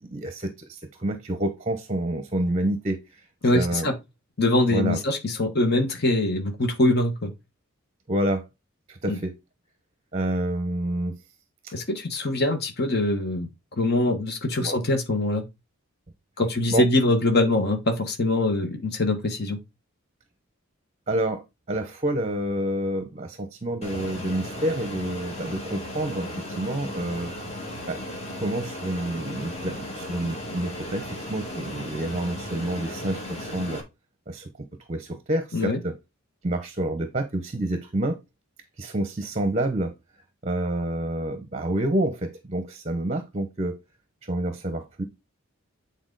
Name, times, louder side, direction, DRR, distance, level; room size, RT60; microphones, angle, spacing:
voice 1, 0.0-3.3 3.5-3.9 4.7-5.0 8.1-8.5 8.9-9.4 10.1-11.2 11.6-11.7 14.6-14.8 16.7-16.9 21.1-27.3 27.9-28.0 28.4-33.8 34.3-35.9 36.4-38.2 38.8-39.9 40.4-43.8 44.2-45.0, right 1 dB, 30° right, 0.8 m, -28 dB
voice 2, 3.4-3.9 4.4-7.3 9.1-9.2 11.7-13.5 13.8-15.4 16.4-19.6 35.5-35.8, left 1 dB, 50° left, 1.3 m, -23 dB
Fixed-wing aircraft airplane, 23.8-33.8, left 1 dB, 30° left, 2.0 m, -36 dB
8.7 x 4.1 x 3.9 m
head